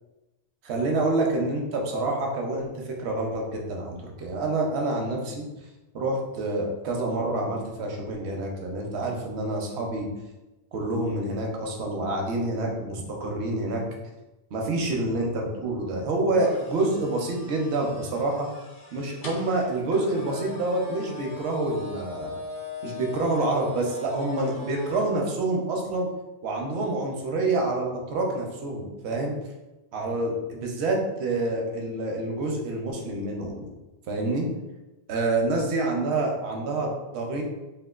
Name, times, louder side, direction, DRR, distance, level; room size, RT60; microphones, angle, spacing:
voice 1, 0.6-5.4 5.9-10.1 10.7-13.8 14.5-18.5 18.9-22.4 22.8-26.1 26.4-29.3 29.9-33.7 34.1-34.5 35.1-37.4, right 2 dB, 80° right, 1 dB, 0.9 m, -27 dB
sound 1, 16.3-25.1, left 2 dB, 55° left, 0.7 m, -40 dB
3.6 x 2.3 x 2.3 m, 1.0 s
omnidirectional pair, 1.1 m